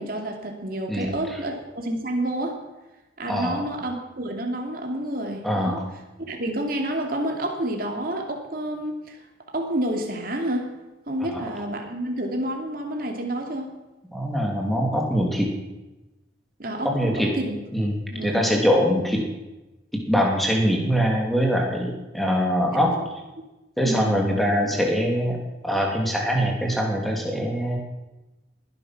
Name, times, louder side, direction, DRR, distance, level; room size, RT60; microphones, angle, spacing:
voice 1, 0.0-2.6 3.2-5.8 6.3-9.2 9.5-10.7 11.1-13.8 16.6-17.5 18.1-18.4 22.7-22.8 23.8-24.2, right 1 dB, 50° right, 2 dB, 2.6 m, -29 dB
voice 2, 3.3-3.7 5.4-5.9 14.1-15.5 16.8-17.3 17.7-17.9 18.2-19.2 20.1-22.9 23.8-25.4 25.6-27.8, equal, ahead, 0 dB, 2.9 m, -23 dB
20.0 x 11.0 x 6.1 m, 1.1 s
head